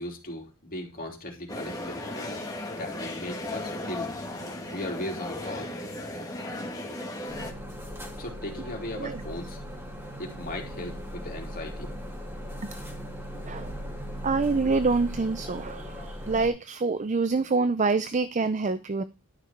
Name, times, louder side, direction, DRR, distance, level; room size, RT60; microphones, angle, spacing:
voice 1, 0.0-4.1 4.7-5.7 6.9-7.0 8.2-9.6 10.2-12.1 13.3-13.5, left 1 dB, 40° left, 1 dB, 3.4 m, -38 dB
sound 1, 1.5-7.5, left 1 dB, 15° left, 2.3 m, -36 dB
sound 2, 7.3-16.5, equal, 10° right, 3.1 m, -38 dB
voice 2, 14.2-19.0, right 4 dB, 35° right, 13 dB, 0.5 m, -26 dB
12.0 x 6.4 x 4.5 m, 0.28 s
head